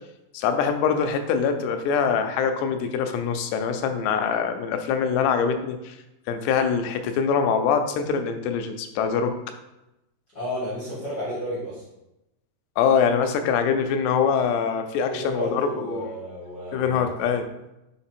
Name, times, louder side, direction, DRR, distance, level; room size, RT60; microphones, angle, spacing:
voice 1, 0.3-5.9 6.3-9.4 12.8-16.1 16.7-17.5, left 6 dB, 90° left, 7 dB, 2.8 m, -24 dB
voice 2, 10.3-11.8 15.1-17.1, equal, 50° left, -9 dB, 1.1 m, -32 dB
7.5 x 3.7 x 4.4 m, 0.92 s
omnidirectional pair, 4.7 m